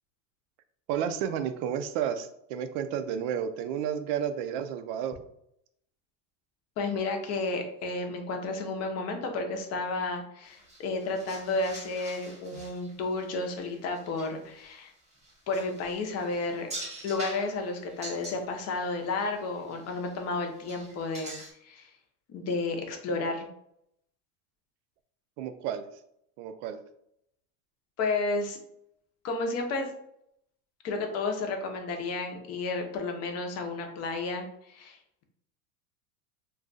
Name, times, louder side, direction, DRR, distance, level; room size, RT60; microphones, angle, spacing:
voice 1, 0.9-5.2 25.4-25.9 26.4-26.8, right 8 dB, 55° right, 9 dB, 0.5 m, -31 dB
voice 2, 6.8-14.9 15.5-16.7 17.0-21.4 21.6-21.9 22.3-23.5 28.0-28.6 29.2-29.9 30.8-35.0, left 3 dB, 35° left, 3 dB, 0.7 m, -32 dB
sound 1, 10.4-18.8 19.2-20.3 20.5-21.5, right 1 dB, 15° right, 1.0 m, -45 dB
2.5 x 2.3 x 3.9 m, 0.74 s
supercardioid pair, 130°, 45 cm